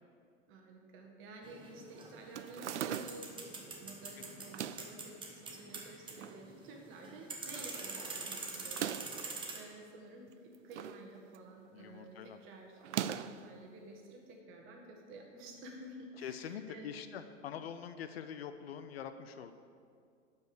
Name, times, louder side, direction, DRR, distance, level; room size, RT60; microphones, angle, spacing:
voice 1, 0.5-17.2, right 1 dB, 30° right, 1 dB, 1.7 m, -52 dB
sound 1, 1.4-9.6, right 3 dB, 15° right, 1.1 m, -45 dB
sound 2, 2.3-3.4 4.4-5.0 5.7-6.4 6.8-6.9 7.0-7.1 8.6-9.2 10.3-11.0 11.3-11.7 12.8-13.5, right 10 dB, 65° right, 0.5 m, -40 dB
voice 2, 11.7-12.4 16.2-19.5, left 8 dB, 55° left, 10 dB, 0.6 m, -44 dB
11.5 x 5.4 x 6.6 m, 2.3 s
figure-of-eight pair, 95°, 38 cm